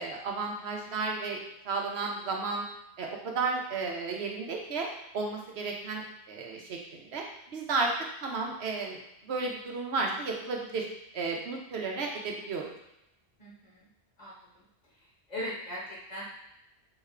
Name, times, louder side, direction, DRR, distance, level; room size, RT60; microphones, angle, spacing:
voice 1, 0.0-1.4 1.6-2.7 3.0-4.9 5.1-7.9 8.2-10.9 11.1-12.7, right 4 dB, 75° right, 0 dB, 1.0 m, -33 dB
voice 2, 13.4-13.9 14.2-14.6 14.9-16.2, left 1 dB, 40° left, -5 dB, 1.4 m, -40 dB
4.0 x 3.3 x 3.6 m, 0.85 s
omnidirectional pair, 1.1 m